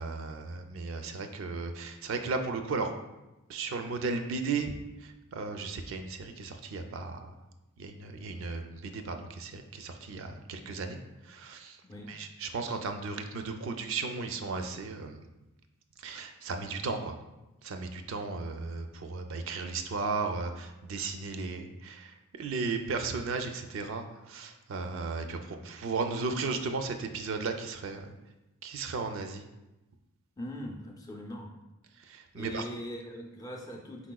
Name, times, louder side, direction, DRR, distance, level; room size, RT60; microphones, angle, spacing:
voice 1, 0.0-2.9 3.5-4.7 5.0-7.3 7.8-11.0 11.2-11.8 12.1-15.2 16.0-17.2 17.6-28.1 28.6-29.5 32.1-32.6, right 4 dB, 60° right, 6 dB, 0.4 m, -35 dB
voice 2, 11.8-12.1 30.4-31.6 32.3-34.1, equal, 15° left, 1 dB, 0.4 m, -41 dB
4.7 x 4.1 x 2.2 m, 1.0 s
head